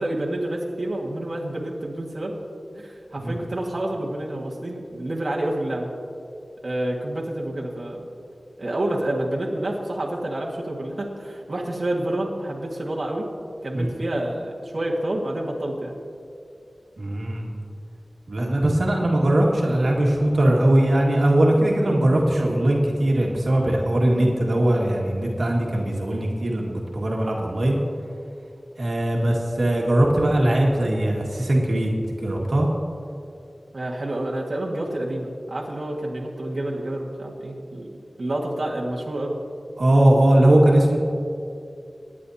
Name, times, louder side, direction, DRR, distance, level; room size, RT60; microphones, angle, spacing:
voice 1, 0.0-2.3 2.7-5.9 6.6-8.1 8.6-13.2 13.6-15.9 33.7-37.9 38.2-39.4, right 1 dB, 55° right, -4 dB, 1.8 m, -28 dB
voice 2, 17.0-17.5 18.3-27.8 28.8-31.9 32.2-32.7 39.8-41.0, right 1 dB, 80° right, -2 dB, 1.8 m, -20 dB
25.0 x 10.0 x 2.8 m, 2.5 s
wide cardioid pair, 80°, 0 cm